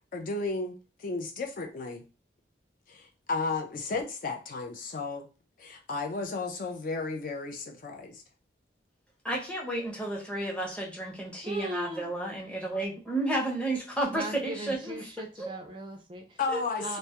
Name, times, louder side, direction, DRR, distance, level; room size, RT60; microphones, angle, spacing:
voice 1, 0.1-0.7 1.0-2.0 2.9-5.3 5.6-8.2 16.4-17.0, left 3 dB, 50° left, 3 dB, 0.4 m, -33 dB
voice 2, 9.2-15.0 15.4-15.5 16.5-16.6, right 1 dB, 5° left, -2 dB, 0.7 m, -32 dB
voice 3, 11.4-12.1 14.1-16.4 16.8-17.0, right 1 dB, 25° right, 3 dB, 0.3 m, -38 dB
2.2 x 2.0 x 2.8 m, 0.33 s
head